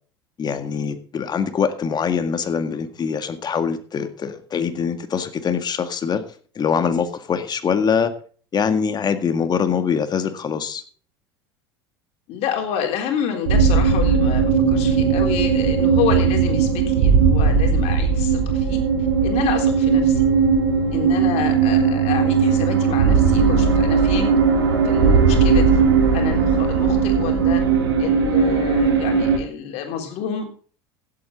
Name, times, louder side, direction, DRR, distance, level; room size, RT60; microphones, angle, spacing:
voice 1, 0.4-6.2 6.6-8.1 8.5-10.8, left 6 dB, 35° left, 9 dB, 1.9 m, -23 dB
voice 2, 12.3-18.8 19.2-20.3 20.9-24.3 24.8-25.9 26.1-27.6 28.0-30.4, left 8 dB, 55° left, 3 dB, 3.8 m, -28 dB
sound 1, 13.5-29.4, right 5 dB, 75° right, 2.8 m, -18 dB
16.0 x 8.6 x 4.0 m, 0.43 s
hypercardioid pair, 75°, 13 cm